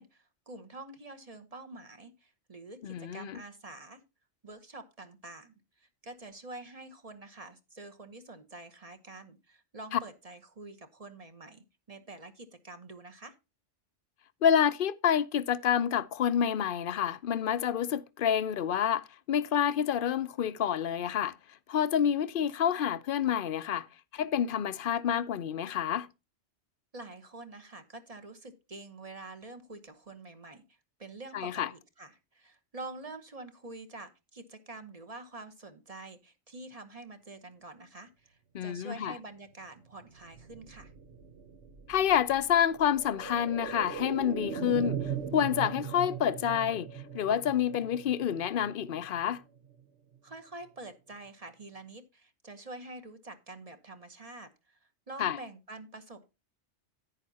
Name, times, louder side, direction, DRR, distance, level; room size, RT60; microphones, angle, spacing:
voice 1, 0.0-4.0 4.4-13.3 26.9-30.6 31.0-40.9 50.2-54.8 55.1-56.3, right 2 dB, 35° right, 1.1 m, -47 dB
voice 2, 2.8-3.4 9.9-10.0 14.4-21.4 21.7-23.9 24.1-26.1 31.3-31.7 38.5-39.1 41.9-45.0 45.3-46.9 47.1-49.4 55.2-55.4, left 9 dB, 55° left, 0.7 m, -28 dB
sound 1, 40.0-49.8 50.1-50.2, right 7 dB, 70° right, 1.1 m, -40 dB
11.0 x 9.0 x 2.7 m
omnidirectional pair, 1.2 m